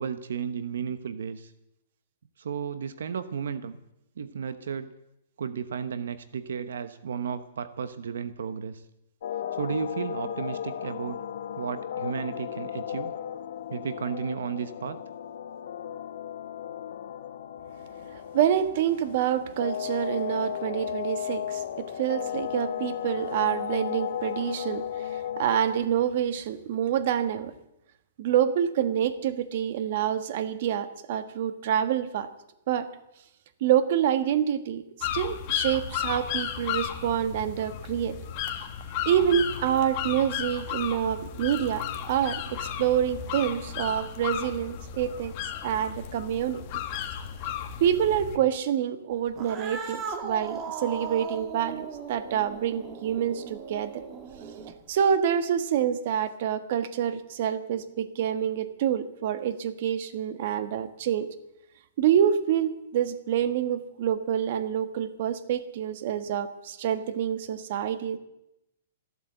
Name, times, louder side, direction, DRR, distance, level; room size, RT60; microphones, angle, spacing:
voice 1, 0.0-1.5 2.4-3.8 4.2-4.9 5.4-8.8 9.5-11.2 11.6-13.1 13.7-15.0, right 7 dB, 85° right, 12 dB, 1.0 m, -33 dB
sound 1, 9.2-25.8, left 10 dB, 70° left, 1.2 m, -35 dB
voice 2, 18.3-27.5 28.2-32.3 32.7-32.9 33.6-38.2 39.0-45.3 45.6-46.8 47.8-54.0 54.9-61.3 62.0-68.2, right 9 dB, 55° right, 11 dB, 1.3 m, -27 dB
sound 2, 35.0-48.4, left 10 dB, 35° left, 1.7 m, -34 dB
Cat, 49.3-54.9, right 5 dB, 25° right, 1.8 m, -38 dB
14.5 x 12.5 x 7.9 m, 0.86 s
hypercardioid pair, 155°, 0 cm